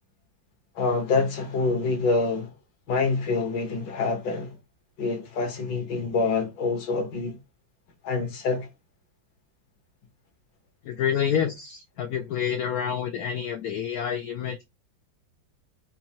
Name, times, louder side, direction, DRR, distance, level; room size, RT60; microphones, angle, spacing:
voice 1, 0.8-2.5 2.9-4.6 5.0-7.4 8.0-8.7, left 4 dB, 65° left, 1.7 m, -26 dB
voice 2, 10.8-14.6, left 8 dB, 85° left, 0.8 m, -28 dB
4.4 x 2.7 x 2.8 m
omnidirectional pair, 2.1 m